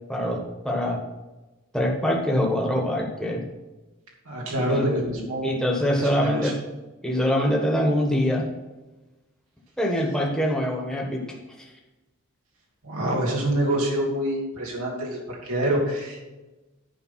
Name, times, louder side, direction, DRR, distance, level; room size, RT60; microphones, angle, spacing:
voice 1, 0.1-1.0 1.7-3.4 4.7-6.6 7.0-8.5 9.8-11.7, equal, 5° left, -1 dB, 1.4 m, -24 dB
voice 2, 4.2-5.5 6.0-6.5 12.8-16.2, right 1 dB, 85° right, -2 dB, 1.9 m, -26 dB
10.0 x 5.2 x 5.8 m, 1.1 s
head